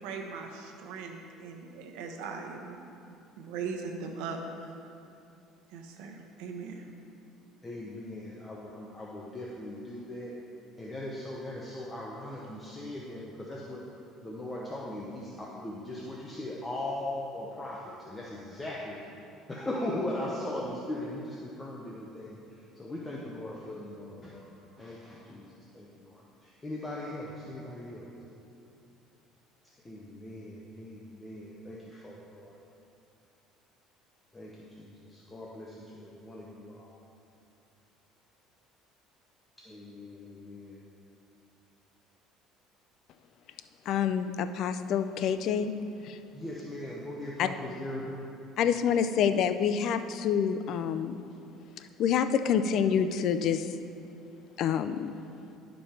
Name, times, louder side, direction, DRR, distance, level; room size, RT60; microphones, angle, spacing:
voice 1, 0.0-4.8 5.7-6.9, right 5 dB, 80° right, 3 dB, 1.0 m, -40 dB
voice 2, 7.6-10.4 10.8-13.8 14.2-19.0 19.5-25.5 25.7-28.1 29.8-32.6 34.3-37.0 39.6-40.8 46.3-48.3, left 1 dB, 15° left, -4 dB, 0.9 m, -39 dB
voice 3, 43.9-45.7 46.0-46.2 47.4-47.5 48.6-51.2 51.8-53.7 54.6-55.1, left 8 dB, 55° left, 10 dB, 0.4 m, -27 dB
11.0 x 5.3 x 4.4 m, 2.6 s
cardioid pair, 120°, 0 cm